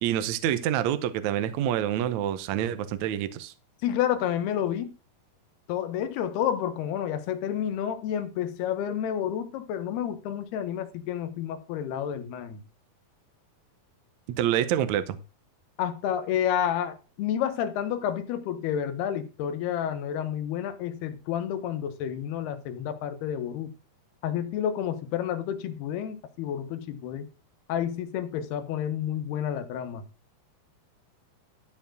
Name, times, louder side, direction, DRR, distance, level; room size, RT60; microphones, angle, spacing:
voice 1, 0.0-3.5 14.4-15.2, right 11 dB, 85° right, 1.6 m, -27 dB
voice 2, 3.8-4.9 5.7-12.6 15.8-23.7 24.2-27.3 27.7-30.1, left 9 dB, 85° left, 3.1 m, -30 dB
13.0 x 4.6 x 6.0 m
omnidirectional pair, 4.5 m